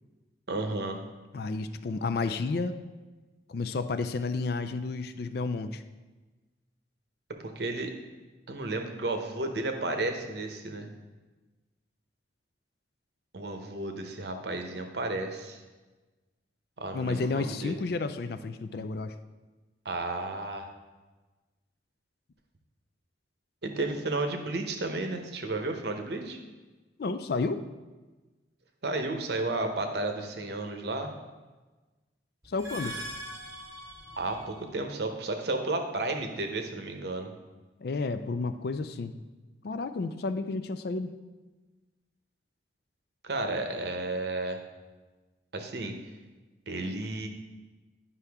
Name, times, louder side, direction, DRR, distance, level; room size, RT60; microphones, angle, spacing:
voice 1, 0.5-1.0 7.4-7.9 8.5-10.9 13.3-15.6 16.8-17.8 19.8-20.7 23.6-26.4 28.8-31.1 34.2-37.3 43.2-44.6 45.5-45.9 46.7-47.3, right 2 dB, 60° right, 5 dB, 0.8 m, -32 dB
voice 2, 1.3-2.8 3.5-5.8 16.9-19.1 27.0-27.6 32.5-33.0 37.8-39.2 39.6-41.2, left 3 dB, 55° left, 10 dB, 0.4 m, -31 dB
sound 1, 32.4-34.7, right 1 dB, 15° right, 0.9 m, -41 dB
9.7 x 5.6 x 3.5 m, 1.2 s
head